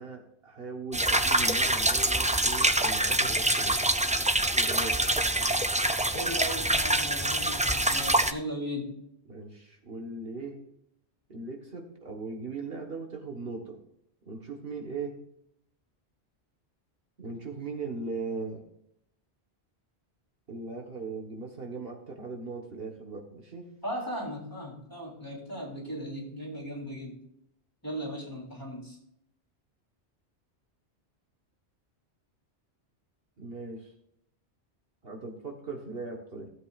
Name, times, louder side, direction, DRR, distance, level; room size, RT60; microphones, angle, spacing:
voice 1, 0.0-3.8 4.5-5.0 9.3-10.6 11.3-13.8 14.2-15.1 17.2-18.6 20.5-23.7 33.4-33.9 35.0-36.5, right 3 dB, 60° right, 2 dB, 1.5 m, -39 dB
sound 1, 0.9-8.3, right 1 dB, 10° right, 0.3 m, -25 dB
voice 2, 6.1-8.9 23.8-27.2 27.8-29.0, equal, 20° left, -3 dB, 3.4 m, -37 dB
16.0 x 8.0 x 2.4 m, 0.77 s
omnidirectional pair, 1.1 m